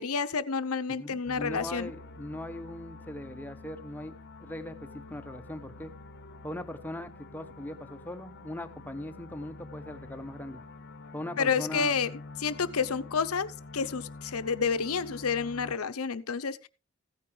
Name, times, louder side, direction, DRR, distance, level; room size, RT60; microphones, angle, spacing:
voice 1, 0.0-1.9 11.4-12.1 12.4-16.7, left 5 dB, 75° left, 0.8 m, -30 dB
voice 2, 1.0-4.1 4.4-5.9 6.4-10.6 11.1-12.0, left 1 dB, 10° left, 0.9 m, -40 dB
sound 1, 1.3-15.8, left 3 dB, 50° left, 0.9 m, -47 dB
15.5 x 9.3 x 3.2 m
head